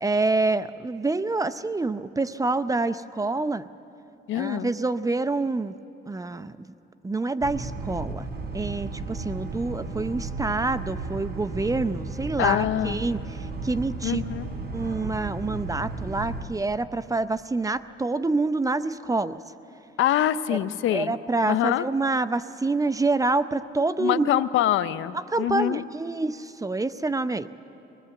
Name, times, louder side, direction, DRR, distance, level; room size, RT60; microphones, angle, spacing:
voice 1, 0.0-3.7 4.3-5.7 6.1-6.6 7.0-8.3 8.5-14.2 14.7-19.4 20.5-20.6 20.9-24.4 25.3-27.5, right 3 dB, 15° right, 13 dB, 0.6 m, -27 dB
voice 2, 4.3-4.7 12.4-13.0 14.0-14.5 20.0-21.1 21.5-21.9 24.0-25.8, left 12 dB, 80° left, 14 dB, 0.7 m, -24 dB
Boat Water vehicle, 7.4-16.4, right 3 dB, 50° right, 3.7 m, -34 dB
24.0 x 19.5 x 7.7 m, 2.8 s
cardioid pair, 90°, 20 cm